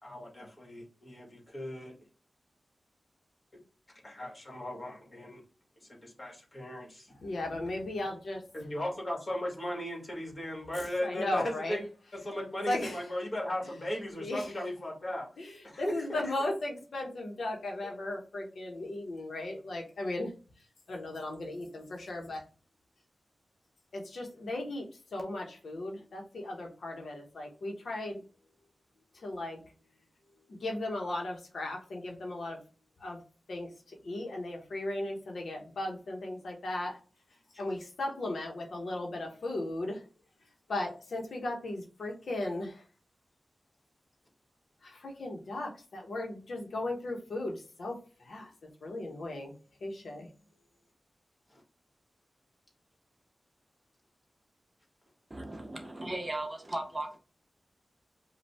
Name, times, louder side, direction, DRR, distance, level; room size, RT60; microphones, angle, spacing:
voice 1, 0.0-1.9 4.0-5.4 5.8-7.1 8.5-11.8 12.1-15.3 15.6-16.5 17.8-17.9 19.5-19.6 51.5-51.6, left 1 dB, 35° left, 1.9 m, -37 dB
voice 2, 7.2-8.4 10.8-11.8 12.7-13.0 14.2-14.5 15.4-20.3 20.9-22.4 23.9-24.8 25.1-28.2 29.1-29.6 30.5-32.6 33.0-33.2 33.5-37.0 37.6-40.0 40.7-42.8 44.8-48.5 48.8-49.5 49.8-50.3, left 2 dB, 80° left, 1.2 m, -36 dB
voice 3, 55.3-57.2, right 1 dB, 25° right, 0.8 m, -37 dB
5.2 x 2.6 x 3.5 m
wide cardioid pair, 105°, 0 cm